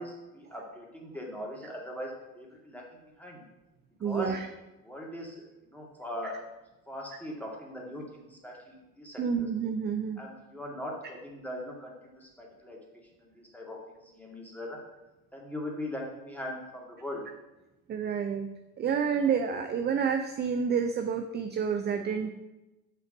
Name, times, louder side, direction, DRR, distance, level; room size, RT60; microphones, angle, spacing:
voice 1, 0.0-3.4 4.0-4.3 4.8-6.4 6.9-9.2 10.2-12.8 13.2-14.8 15.3-17.2, left 1 dB, 5° left, -2 dB, 2.1 m, -40 dB
voice 2, 4.0-4.5 6.2-6.3 9.2-10.2 17.9-18.5 18.8-22.3, right 6 dB, 25° right, 6 dB, 0.5 m, -29 dB
5.7 x 4.6 x 6.1 m, 1.0 s
hypercardioid pair, 70°, 44 cm